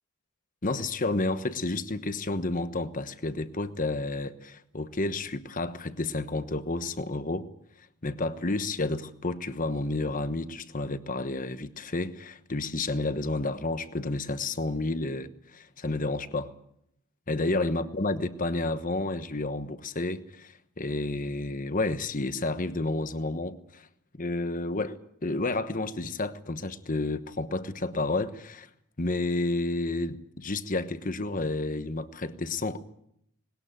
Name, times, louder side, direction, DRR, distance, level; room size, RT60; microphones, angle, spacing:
voice 1, 0.6-7.5 8.0-16.5 17.3-23.9 24.1-28.7 29.0-32.8, left 2 dB, 40° left, 1.2 m, -30 dB
20.0 x 19.0 x 9.0 m
head